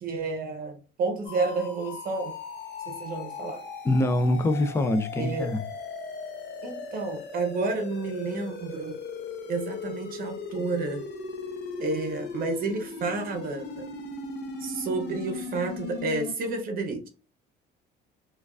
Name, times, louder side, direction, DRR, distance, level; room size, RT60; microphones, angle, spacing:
voice 1, 0.0-2.4 2.9-3.7 5.2-5.5 6.6-9.0 9.5-11.0 11.8-13.9 14.6-17.1, right 3 dB, 50° right, 0.7 m, -30 dB
sound 1, 1.2-16.3, left 4 dB, 65° left, 0.8 m, -38 dB
voice 2, 3.8-5.6, left 1 dB, 15° left, 0.3 m, -24 dB
4.6 x 2.3 x 2.3 m
cardioid pair, 175°, 19 cm